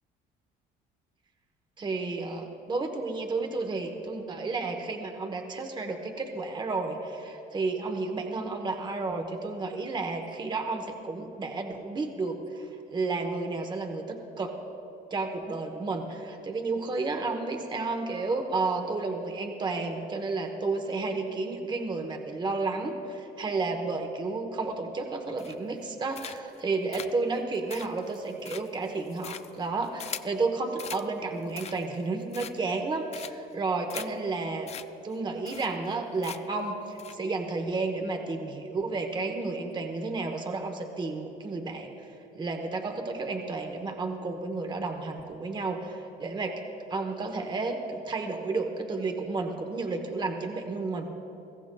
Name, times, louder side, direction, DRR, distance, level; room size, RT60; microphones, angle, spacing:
voice 1, 1.8-14.5 15.1-34.7 35.0-42.1 42.3-46.6 46.9-51.1, right 3 dB, 25° right, 5 dB, 1.0 m, -32 dB
sound 1, 25.4-25.8 26.1-26.6 26.9-30.4 30.8-31.1 31.4-32.0 32.3-32.8 33.1-33.5 33.9-34.1 34.3-34.4 34.7-34.8 35.1-35.2 35.5-35.9 36.2-36.6 37.0-37.2, left 8 dB, 40° left, 0.4 m, -41 dB
21.0 x 15.5 x 2.3 m, 2.9 s
cardioid pair, 110°, 17 cm